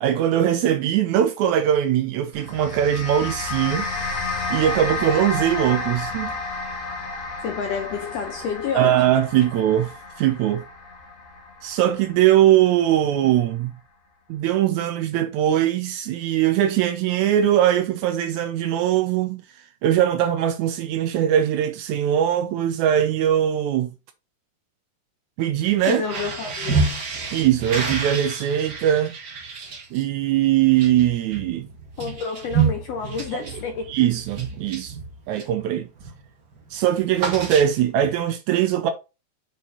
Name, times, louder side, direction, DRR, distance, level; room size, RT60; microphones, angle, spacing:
voice 1, 0.0-3.9 4.5-6.3 8.7-9.9 10.2-10.6 11.6-13.7 14.3-19.4 19.8-23.9 25.4-26.0 27.3-29.1 29.9-31.7 33.3-33.4 33.9-35.0 35.3-35.9 36.7-38.9, right 11 dB, 80° right, 1.8 m, -21 dB
sound 1, 2.3-12.9, left 3 dB, 60° left, 2.5 m, -31 dB
voice 2, 7.4-9.0 25.9-26.9 32.0-33.9, left 6 dB, 75° left, 1.5 m, -29 dB
sound 2, 25.7-35.6 36.0-36.3 36.5-38.1, right 5 dB, 55° right, 1.0 m, -29 dB
6.0 x 4.3 x 4.0 m
omnidirectional pair, 3.7 m